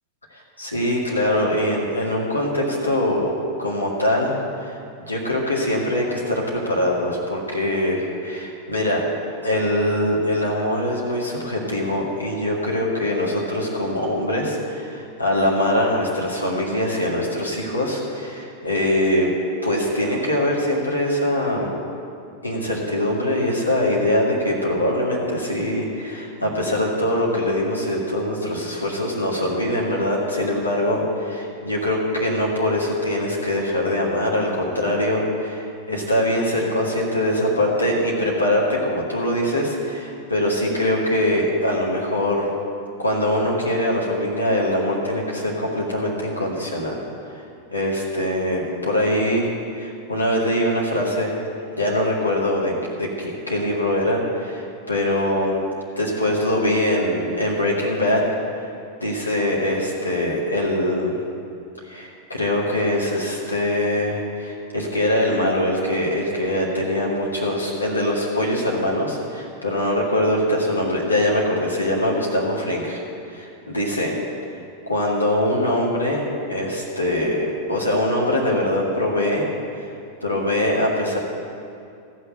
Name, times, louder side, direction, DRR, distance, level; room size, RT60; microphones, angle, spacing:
voice 1, 0.3-4.8 5.1-9.0 9.4-19.3 19.6-21.8 22.4-42.5 43.0-47.0 47.3-47.4 47.7-51.3 51.7-55.6 56.0-58.2 59.0-61.1 61.8-73.0 73.3-74.1 74.9-79.5 79.7-79.9 80.2-81.2, left 1 dB, 85° left, -4 dB, 2.1 m, -23 dB
14.0 x 6.4 x 8.7 m, 2.5 s
figure-of-eight pair, 90°, 0 cm